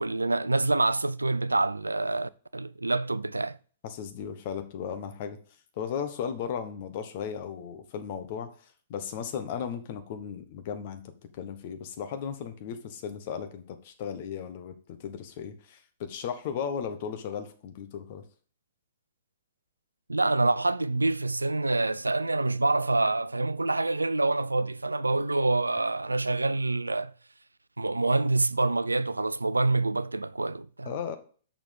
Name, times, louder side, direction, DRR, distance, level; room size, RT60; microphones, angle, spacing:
voice 1, 0.0-3.6 20.1-27.1 27.8-30.9, right 2 dB, 85° right, 0.3 m, -26 dB
voice 2, 3.8-5.4 5.7-11.0 11.4-18.2 30.8-31.2, left 7 dB, 50° left, 1.3 m, -36 dB
6.6 x 5.9 x 5.2 m
figure-of-eight pair, 110°, 0 cm